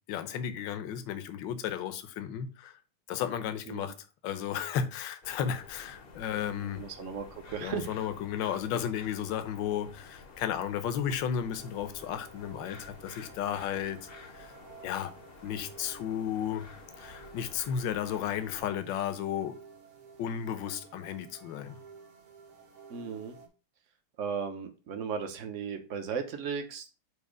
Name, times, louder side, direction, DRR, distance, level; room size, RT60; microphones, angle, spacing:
voice 1, 0.1-2.7 3.1-3.9 4.2-6.8 7.6-14.5 14.8-15.1 15.4-19.5 20.2-21.8, left 9 dB, 70° left, 1.3 m, -34 dB
sound 1, 5.2-18.7, left 4 dB, 45° left, 0.7 m, -51 dB
voice 2, 6.6-7.9 22.9-23.4 24.2-26.9, right 6 dB, 55° right, 0.9 m, -36 dB
sound 2, 11.6-23.5, right 5 dB, 90° right, 2.4 m, -53 dB
8.1 x 2.9 x 5.2 m
omnidirectional pair, 2.4 m